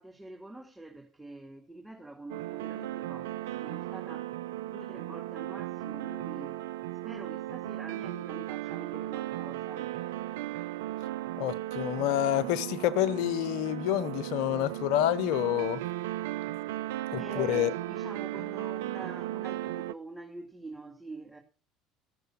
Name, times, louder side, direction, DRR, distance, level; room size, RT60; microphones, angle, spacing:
voice 1, 0.0-4.3 4.7-6.7 7.0-9.9 10.5-10.6 17.2-21.4, right 2 dB, 5° right, 2.2 m, -46 dB
sound 1, 2.3-19.9, right 14 dB, 75° right, 0.4 m, -36 dB
voice 2, 11.3-15.8 17.1-17.7, left 12 dB, 70° left, 0.8 m, -28 dB
13.5 x 6.7 x 5.7 m
hypercardioid pair, 70°, 0 cm